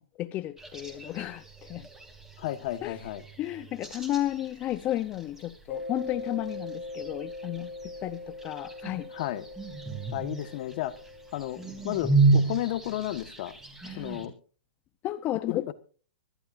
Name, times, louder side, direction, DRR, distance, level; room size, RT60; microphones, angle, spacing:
voice 1, 0.0-1.9 2.8-3.0 3.4-7.7 8.0-9.1 13.8-14.2 15.0-15.7, left 13 dB, 25° left, 0.7 m, -33 dB
sound 1, 0.6-14.3, right 3 dB, 5° right, 3.2 m, -32 dB
voice 2, 2.4-3.2 9.1-9.4 10.1-10.9 11.3-13.5 14.0-14.3 15.4-15.7, left 14 dB, 50° left, 1.4 m, -33 dB
Mallet percussion, 5.7-12.1, left 2 dB, 90° left, 2.6 m, -41 dB
25.0 x 12.0 x 2.6 m
hypercardioid pair, 135°, 6 cm